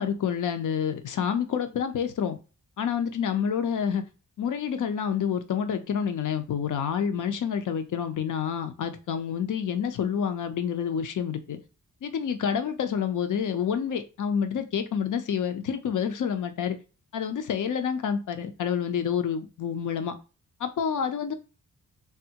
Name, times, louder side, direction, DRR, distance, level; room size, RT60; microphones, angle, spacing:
voice 1, 0.0-2.4 2.8-4.0 4.4-11.6 12.0-16.8 17.1-20.1 20.6-21.3, left 7 dB, 65° left, 0.6 m, -28 dB
3.5 x 2.0 x 2.8 m
cardioid pair, 55°, 34 cm